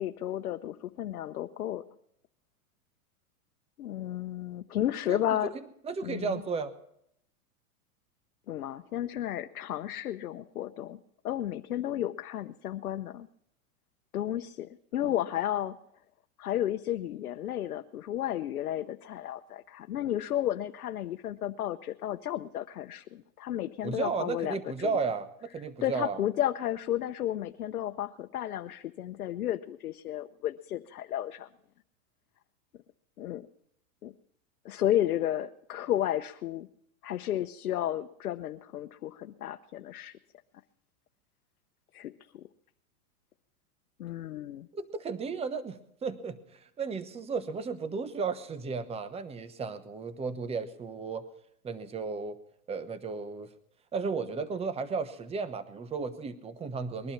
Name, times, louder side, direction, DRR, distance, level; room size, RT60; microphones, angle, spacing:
voice 1, 0.0-1.8 3.8-5.5 6.0-6.4 8.5-11.0 11.2-13.3 14.1-15.8 16.4-25.1 25.8-31.5 33.2-33.5 34.0-34.1 34.6-36.7 37.0-40.2 41.9-42.4 44.0-44.7, left 12 dB, 90° left, 7 dB, 0.9 m, -33 dB
voice 2, 5.1-5.5 5.8-6.7 23.8-26.2 44.7-51.2 51.6-52.4 52.7-53.5 53.9-57.1, right 4 dB, 15° right, 12 dB, 1.1 m, -34 dB
21.0 x 11.5 x 5.8 m, 0.75 s
hypercardioid pair, 130°, 43 cm